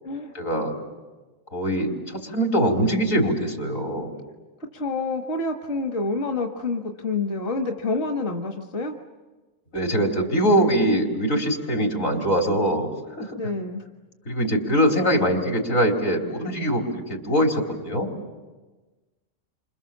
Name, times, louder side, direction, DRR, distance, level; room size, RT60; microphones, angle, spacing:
voice 1, 0.3-0.7 1.5-1.9 2.3-4.1 9.7-12.9 13.2-13.4 14.3-16.8 17.1-18.1, equal, 75° left, 1 dB, 4.5 m, -22 dB
voice 2, 4.7-9.0 13.4-13.8, left 3 dB, 55° left, 3 dB, 1.8 m, -28 dB
29.5 x 26.5 x 7.4 m, 1.2 s
omnidirectional pair, 1.4 m